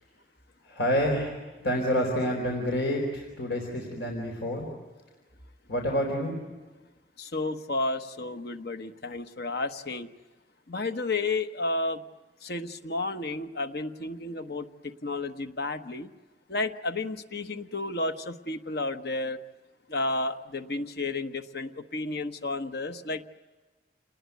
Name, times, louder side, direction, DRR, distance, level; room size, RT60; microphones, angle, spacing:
voice 1, 0.6-4.7 5.7-6.4, equal, 85° left, 1 dB, 4.2 m, -28 dB
voice 2, 7.2-10.1 10.7-12.0 12.4-16.1 16.5-19.4 19.9-23.3, left 2 dB, 65° left, 8 dB, 1.2 m, -32 dB
28.5 x 20.0 x 9.3 m, 1.2 s
head